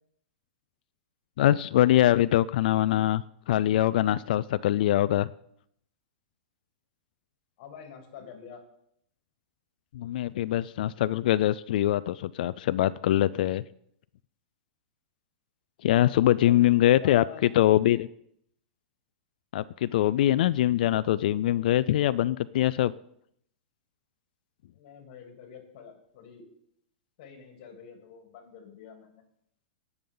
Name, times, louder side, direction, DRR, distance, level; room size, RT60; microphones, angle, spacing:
voice 1, 1.4-5.3 9.9-13.6 15.8-18.1 19.5-22.9, left 13 dB, 65° left, 16 dB, 0.4 m, -23 dB
voice 2, 7.6-8.6 16.2-17.8 24.7-26.5 27.2-29.2, left 7 dB, 50° left, 3 dB, 3.1 m, -47 dB
18.5 x 7.0 x 3.9 m, 0.70 s
hypercardioid pair, 145°, 5 cm